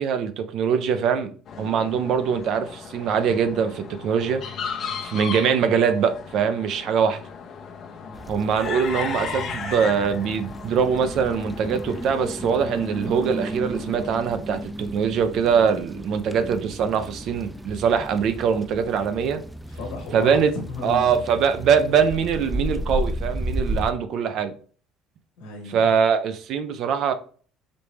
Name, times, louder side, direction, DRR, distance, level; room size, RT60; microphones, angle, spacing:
voice 1, 0.0-4.4 5.0-7.2 8.3-19.4 20.1-20.5 20.8-24.5 25.7-27.1, right 7 dB, 65° right, 0.6 m, -23 dB
sound 1, 1.5-14.2, left 6 dB, 55° left, 0.8 m, -36 dB
voice 2, 8.0-8.4 19.7-21.2 25.4-26.0, left 4 dB, 80° left, 1.3 m, -35 dB
sound 2, 8.1-23.9, right 1 dB, 5° right, 0.4 m, -33 dB
5.2 x 2.9 x 3.2 m
supercardioid pair, 80°, 0 cm